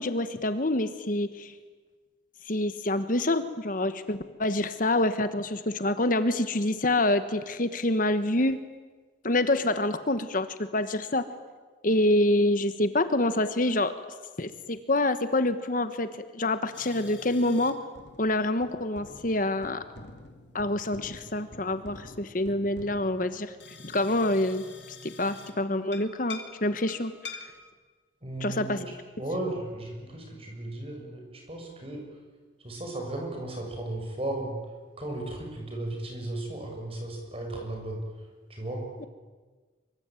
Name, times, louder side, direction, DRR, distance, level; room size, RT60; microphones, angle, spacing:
voice 1, 0.0-1.5 2.4-8.6 9.2-11.2 11.8-13.9 14.4-16.1 16.3-17.8 18.2-19.8 20.5-23.5 23.8-24.6 25.0-27.4 28.4-28.8 39.0-39.1, left 1 dB, 45° left, 11 dB, 1.2 m, -26 dB
sound 1, 16.7-17.7 18.0-25.5 25.9-27.7, left 3 dB, 65° left, 2.6 m, -47 dB
voice 2, 28.2-28.8 29.2-32.0 32.6-34.6 35.0-38.0 38.5-38.9, right 1 dB, 30° right, 2 dB, 6.9 m, -35 dB
25.0 x 24.0 x 9.1 m, 1.4 s
head